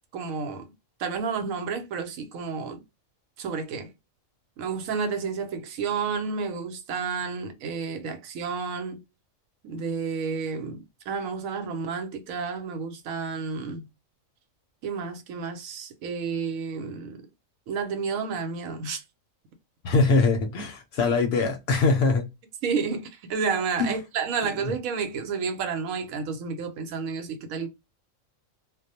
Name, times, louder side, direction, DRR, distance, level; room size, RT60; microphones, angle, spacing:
voice 1, 0.1-0.7 1.0-2.8 3.4-3.9 4.6-9.0 9.6-13.9 14.8-17.2 17.7-19.0 22.6-27.7, right 5 dB, 90° right, 1.0 m, -31 dB
voice 2, 19.8-22.3 23.8-23.9 24.6-24.7, left 3 dB, 65° left, 0.7 m, -22 dB
2.3 x 2.0 x 2.7 m
omnidirectional pair, 1.4 m